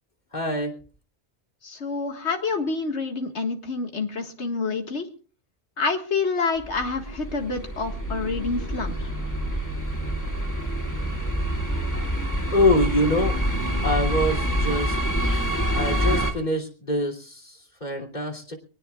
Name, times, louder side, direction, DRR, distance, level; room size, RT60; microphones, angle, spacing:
voice 1, 0.3-0.8 12.5-13.3 13.8-15.0 15.8-18.5, left 1 dB, 40° left, 5 dB, 3.1 m, -24 dB
voice 2, 1.6-5.1 5.8-9.0, left 4 dB, 90° left, 4 dB, 2.0 m, -27 dB
sound 1, 6.6-16.3, right 1 dB, 15° left, 2.3 m, -26 dB
24.5 x 18.5 x 2.4 m, 0.39 s
omnidirectional pair, 1.1 m